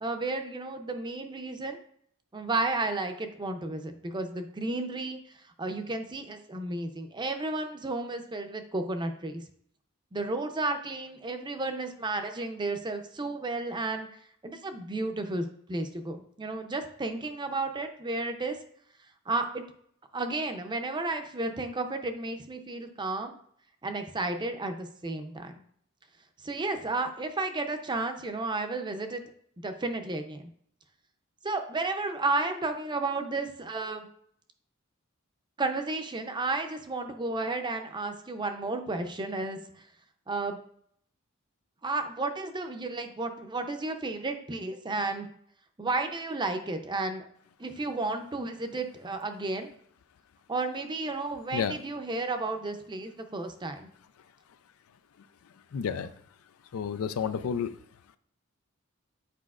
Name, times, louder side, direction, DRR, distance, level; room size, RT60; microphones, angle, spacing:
voice 1, 0.0-1.8 2.3-5.2 5.6-9.4 10.1-14.1 14.4-18.6 19.3-19.6 20.1-23.3 23.8-25.6 26.4-29.2 29.6-30.5 31.4-34.1 35.6-39.8 40.3-40.6 41.8-45.3 45.8-47.2 47.6-49.7 50.5-53.9, right 2 dB, 20° right, 6 dB, 0.5 m, -32 dB
voice 2, 55.7-56.1 56.7-57.7, left 7 dB, 85° left, 12 dB, 0.4 m, -30 dB
8.4 x 4.9 x 2.4 m, 0.65 s
head